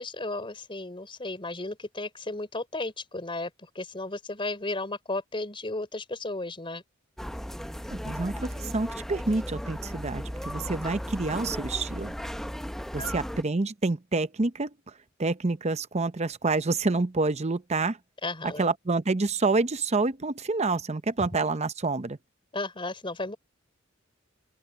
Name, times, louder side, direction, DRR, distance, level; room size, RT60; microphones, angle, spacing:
voice 1, 0.0-6.8 13.0-13.1 18.2-18.7 21.2-21.3 22.5-23.4, left 2 dB, 25° left, 4.3 m, -34 dB
sound 1, 7.2-13.4, equal, ahead, 0.7 m, -36 dB
voice 2, 7.9-12.1 12.9-14.7 15.2-18.0 18.6-22.2, right 3 dB, 35° right, 0.8 m, -28 dB
open air
head